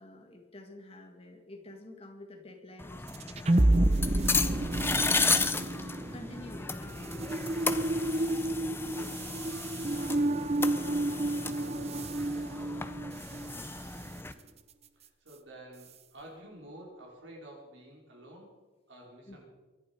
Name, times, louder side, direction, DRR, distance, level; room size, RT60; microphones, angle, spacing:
voice 1, 0.0-4.9 6.1-7.5 8.1-8.7 10.5-11.4 19.3-19.4, left 1 dB, 30° left, 3 dB, 2.0 m, -50 dB
sound 1, 2.8-14.3, left 4 dB, 10° left, 0.6 m, -34 dB
sound 2, 3.1-13.6, right 1 dB, 30° right, 0.7 m, -30 dB
voice 2, 14.3-14.6 14.9-19.4, right 1 dB, 70° right, -1 dB, 4.9 m, -52 dB
23.0 x 11.0 x 5.4 m, 1.2 s
head